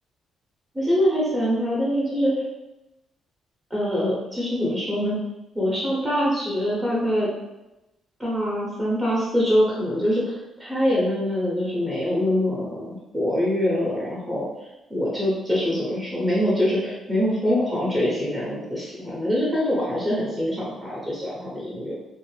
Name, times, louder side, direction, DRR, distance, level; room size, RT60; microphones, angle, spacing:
voice 1, 0.7-2.4 3.7-5.2 5.5-7.3 8.2-14.5 14.9-21.9, equal, 10° right, -7 dB, 0.9 m, -24 dB
2.5 x 2.0 x 3.3 m, 0.98 s
cardioid pair, 90°, 0 cm